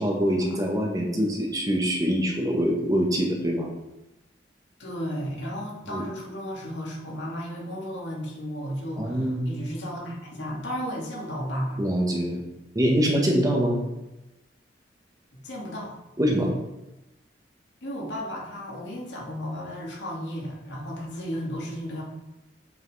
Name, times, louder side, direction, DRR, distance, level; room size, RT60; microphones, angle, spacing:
voice 1, 0.0-3.7 5.9-6.0 9.0-9.6 11.8-12.4 12.7-13.8 16.2-16.5, equal, 20° right, 0 dB, 1.2 m, -24 dB
voice 2, 4.8-11.8 15.4-16.0 17.8-22.0, equal, 85° left, -3 dB, 2.0 m, -34 dB
7.3 x 5.8 x 3.2 m, 0.95 s
head